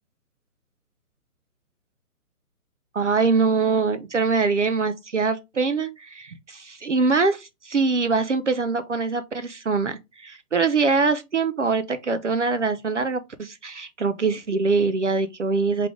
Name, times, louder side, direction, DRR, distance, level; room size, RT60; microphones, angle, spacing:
voice 1, 2.9-15.9, right 4 dB, 50° right, 0.5 m, -23 dB
3.8 x 3.2 x 3.6 m
hypercardioid pair, 175°, 46 cm